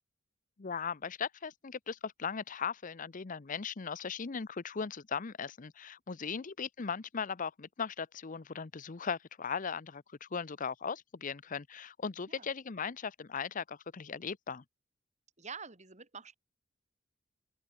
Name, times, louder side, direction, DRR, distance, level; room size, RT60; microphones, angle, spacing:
voice 1, 0.6-14.6, left 6 dB, 40° left, 0.6 m, -38 dB
voice 2, 15.4-16.3, right 5 dB, 35° right, 2.8 m, -47 dB
open air
head